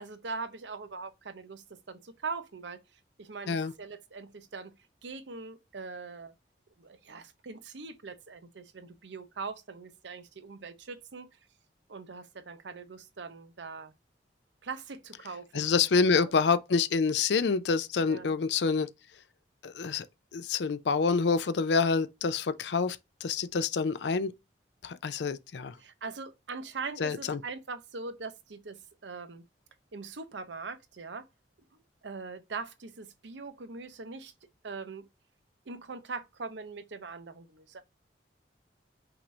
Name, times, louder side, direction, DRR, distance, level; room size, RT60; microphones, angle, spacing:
voice 1, 0.0-2.8 3.2-4.7 5.0-6.3 6.8-11.3 11.9-13.9 14.6-16.3 18.0-18.3 25.8-29.4 29.9-31.3 31.7-34.3 34.6-35.1 35.7-37.8, right 4 dB, 80° right, 0.7 m, -41 dB
voice 2, 15.5-18.9 19.6-20.1 20.3-24.3 24.8-25.7 27.0-27.4, left 5 dB, 70° left, 0.5 m, -27 dB
5.8 x 2.6 x 3.2 m
head